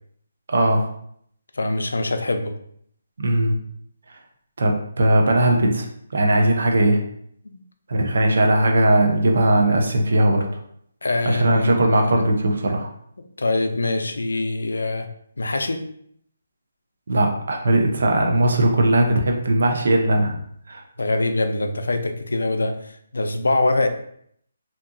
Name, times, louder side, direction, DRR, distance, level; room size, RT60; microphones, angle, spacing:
voice 1, 0.5-0.9 3.2-3.6 4.1-4.2 4.6-5.9 6.1-7.0 7.9-10.6 11.3-12.9 17.1-20.4 20.7-20.8, right 1 dB, 70° right, 3 dB, 0.5 m, -19 dB
voice 2, 1.5-2.5 7.5-7.6 11.0-12.1 13.4-15.1 15.4-15.8 21.0-23.9, left 2 dB, 85° left, 7 dB, 0.3 m, -24 dB
2.8 x 2.3 x 2.4 m, 0.67 s
hypercardioid pair, 155°, 0 cm